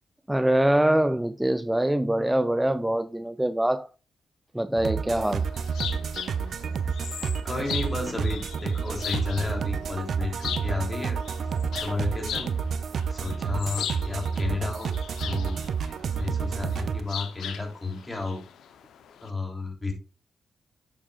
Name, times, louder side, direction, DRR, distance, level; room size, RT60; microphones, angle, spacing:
voice 1, 0.3-3.9 4.5-5.4, right 1 dB, 10° right, 0.5 m, -24 dB
sound 1, 4.8-17.0, right 6 dB, 70° right, 0.5 m, -30 dB
sound 2, 5.2-19.3, left 9 dB, 85° left, 0.8 m, -39 dB
voice 2, 7.4-11.2 11.7-12.5 13.1-14.9 15.2-15.6 16.2-18.4 19.2-19.9, left 3 dB, 25° left, 3.1 m, -32 dB
8.4 x 7.4 x 2.4 m
supercardioid pair, 55°, 0 cm